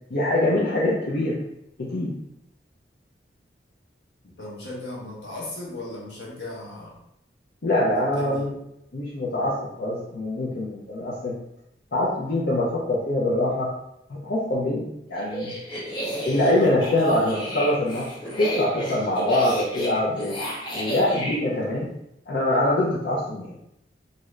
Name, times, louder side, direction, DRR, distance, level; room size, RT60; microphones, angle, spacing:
voice 1, 0.1-1.4 1.8-2.1 7.6-8.5 8.9-11.3 11.9-13.7 14.1-15.5 16.3-18.0 18.4-20.4 20.7-21.9 22.3-23.6, left 1 dB, 70° left, -6 dB, 0.6 m, -24 dB
voice 2, 4.4-7.0 7.9-8.4, left 2 dB, 85° left, -3 dB, 0.9 m, -36 dB
sound 1, 15.2-21.4, equal, 25° left, 0.6 m, -32 dB
2.7 x 2.4 x 3.1 m, 0.80 s
head